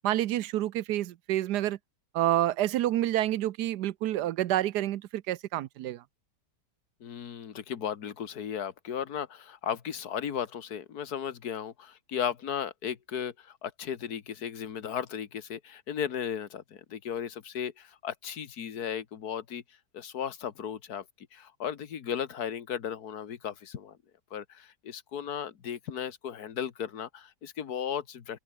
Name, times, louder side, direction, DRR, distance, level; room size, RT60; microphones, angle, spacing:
voice 1, 0.0-1.8 2.1-6.0, right 13 dB, 75° right, 1.2 m, -28 dB
voice 2, 7.0-19.6 19.9-21.0 21.3-24.0 24.3-28.4, left 8 dB, 65° left, 2.0 m, -35 dB
open air
omnidirectional pair, 1.8 m